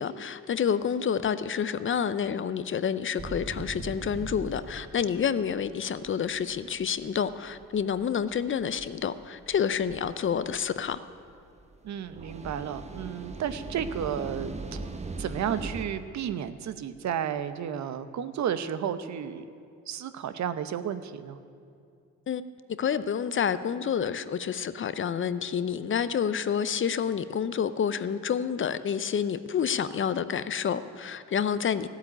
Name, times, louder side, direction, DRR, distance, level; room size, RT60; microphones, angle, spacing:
voice 1, 0.0-11.0 22.3-22.4 22.8-31.9, left 7 dB, 40° left, 0.6 m, -28 dB
sound 1, 3.2-15.9, right 3 dB, 20° right, 1.1 m, -41 dB
voice 2, 11.8-14.8 15.2-19.5 19.9-21.4, right 9 dB, 65° right, 0.9 m, -32 dB
14.5 x 8.2 x 9.9 m
cardioid pair, 90°, 30 cm